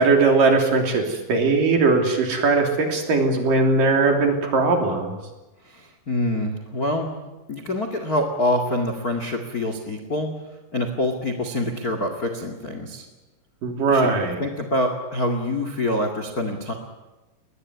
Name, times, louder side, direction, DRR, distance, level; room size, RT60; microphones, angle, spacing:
voice 1, 0.0-5.2 13.6-14.4, right 3 dB, 50° right, 3 dB, 4.6 m, -19 dB
voice 2, 5.6-7.1 7.5-10.3 10.7-13.0 13.9-14.1 14.4-16.7, left 1 dB, 35° left, 6 dB, 1.4 m, -25 dB
21.5 x 20.0 x 9.8 m, 1.1 s
omnidirectional pair, 5.2 m